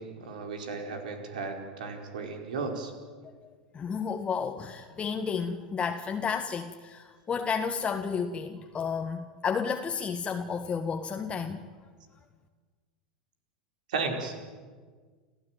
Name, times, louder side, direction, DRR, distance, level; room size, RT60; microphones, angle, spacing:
voice 1, 0.0-2.9 13.9-14.3, right 4 dB, 70° right, 4 dB, 4.8 m, -34 dB
voice 2, 3.7-11.6, left 6 dB, 25° left, 5 dB, 1.6 m, -32 dB
29.0 x 16.0 x 9.3 m, 1.5 s
hypercardioid pair, 90°, 4 cm